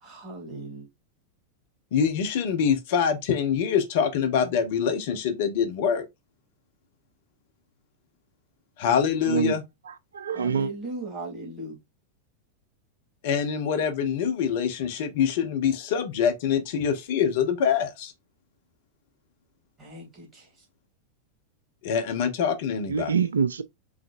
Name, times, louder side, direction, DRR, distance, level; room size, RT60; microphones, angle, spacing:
voice 1, 0.0-0.9 10.3-11.8 19.8-20.5, right 2 dB, 20° right, 2.9 m, -37 dB
voice 2, 1.9-6.0 8.8-9.6 13.2-18.1 21.8-23.1, left 7 dB, 50° left, 1.1 m, -25 dB
voice 3, 9.3-9.6 9.9-10.7 22.9-23.6, right 6 dB, 70° right, 0.3 m, -26 dB
5.1 x 3.7 x 2.6 m
figure-of-eight pair, 90°, 0 cm